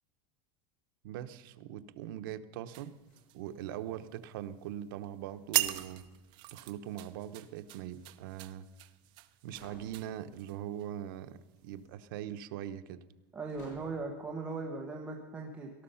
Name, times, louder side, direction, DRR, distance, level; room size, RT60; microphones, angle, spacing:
voice 1, 1.0-3.0 3.3-6.0 6.5-8.7 9.4-13.0, right 11 dB, 85° right, 9 dB, 0.9 m, -41 dB
sound 1, 2.7-3.5 5.3-6.6 7.6-8.4 9.1-9.2 9.5-10.3 11.5-12.0 13.5-14.1, left 2 dB, 60° left, 6.4 m, -58 dB
sound 2, 2.7-4.0 4.3-4.7 5.1-5.2 5.5-10.9 11.4-11.6, right 17 dB, 45° right, 0.8 m, -38 dB
voice 2, 13.3-15.7, right 3 dB, 10° right, -1 dB, 1.3 m, -39 dB
18.5 x 13.0 x 5.7 m, 1.2 s
cardioid pair, 175°, 11 cm